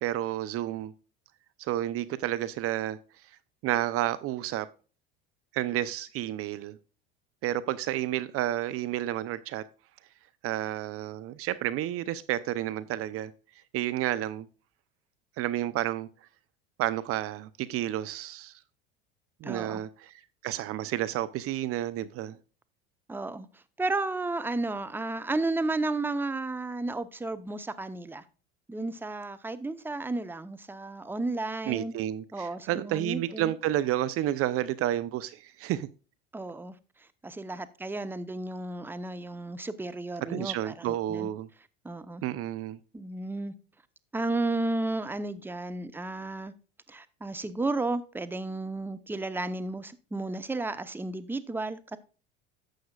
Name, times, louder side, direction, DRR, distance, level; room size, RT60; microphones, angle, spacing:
voice 1, 0.0-0.9 1.6-3.0 3.6-4.7 5.5-6.8 7.4-9.6 10.4-13.3 13.7-14.5 15.4-16.1 16.8-18.5 19.4-20.1 20.4-22.4 31.7-35.9 40.3-41.5 42.2-42.8, right 13 dB, 50° right, 0.7 m, -30 dB
voice 2, 19.4-19.8 23.1-23.5 23.8-28.2 28.7-31.9 32.3-33.5 36.3-36.7 37.2-41.3 41.8-42.2 42.9-43.5 44.1-46.5 46.9-52.0, right 2 dB, 5° right, 0.8 m, -33 dB
11.5 x 7.8 x 2.4 m
hypercardioid pair, 85°, 29 cm